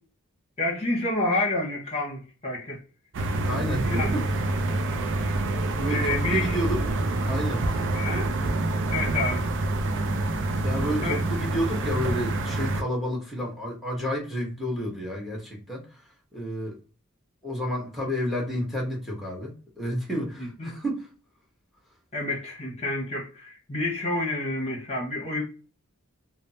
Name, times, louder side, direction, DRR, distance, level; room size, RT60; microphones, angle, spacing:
voice 1, 0.6-2.8 3.8-4.1 5.9-6.6 7.9-8.3 8.9-9.5 11.0-11.3 20.4-20.7 22.1-25.4, left 2 dB, 30° left, 0.9 m, -29 dB
Residential building staircase open door roomtone, 3.1-12.8, right 2 dB, 60° right, 0.5 m, -27 dB
voice 2, 3.5-4.2 5.8-6.8 7.2-7.7 10.6-16.0 16.3-16.7 17.4-21.1, equal, ahead, 1.0 m, -30 dB
3.4 x 2.1 x 2.6 m
head